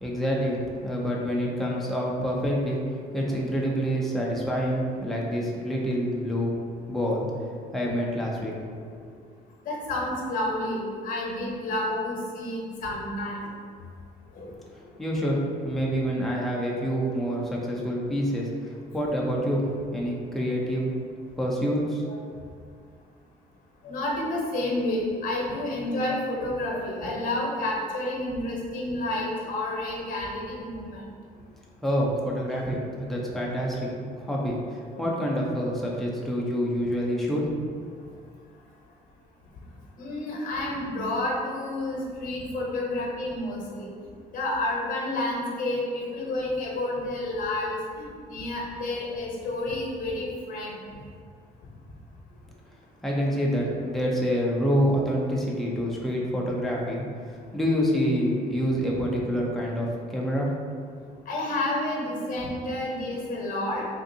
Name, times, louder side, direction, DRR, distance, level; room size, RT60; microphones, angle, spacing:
voice 1, 0.0-6.6 6.9-7.3 7.7-8.5 9.0-9.1 14.7-20.9 21.4-22.0 31.8-37.5 53.0-60.5, equal, ahead, -4 dB, 0.6 m, -27 dB
voice 2, 9.6-13.5 14.3-14.5 22.1-22.2 23.8-31.0 34.9-35.1 40.0-43.9 44.3-50.8 61.3-63.9, left 1 dB, 55° left, -2 dB, 0.9 m, -30 dB
3.6 x 2.5 x 2.6 m, 2.1 s
cardioid pair, 110°, 17 cm